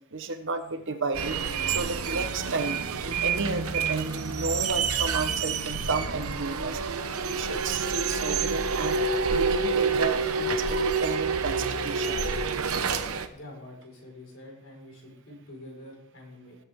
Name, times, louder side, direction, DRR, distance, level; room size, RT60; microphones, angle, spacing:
voice 1, 0.1-7.0 7.2-9.0 9.3-12.5, right 3 dB, 60° right, 8 dB, 1.1 m, -32 dB
sound 1, 1.1-13.3, right 5 dB, 85° right, 1.0 m, -28 dB
voice 2, 13.3-16.6, left 1 dB, 65° left, -1 dB, 5.1 m, -46 dB
19.5 x 8.4 x 3.7 m, 0.75 s
head